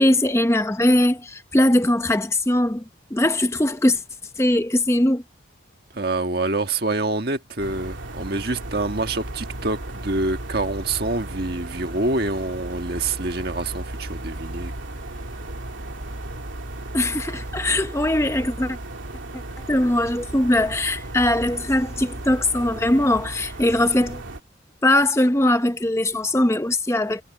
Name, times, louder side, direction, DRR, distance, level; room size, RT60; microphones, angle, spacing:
voice 1, 0.0-2.8 3.1-4.0 4.4-5.2 16.9-18.8 19.7-24.2 24.8-27.2, left 1 dB, 15° left, 0.8 m, -20 dB
voice 2, 5.9-14.7, right 2 dB, 55° right, 1.6 m, -26 dB
sound 1, 7.6-24.4, right 1 dB, 85° right, 2.8 m, -35 dB
head